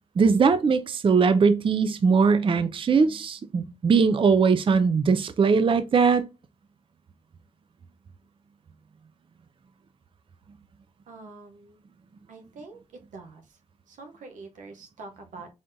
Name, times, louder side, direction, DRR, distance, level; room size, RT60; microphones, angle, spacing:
voice 1, 0.2-6.2, right 5 dB, 45° right, 0.4 m, -20 dB
voice 2, 11.1-11.8 12.3-12.8 13.1-13.4 13.9-15.5, right 3 dB, 90° right, 0.8 m, -44 dB
3.8 x 3.5 x 2.6 m
cardioid pair, 55°, 13 cm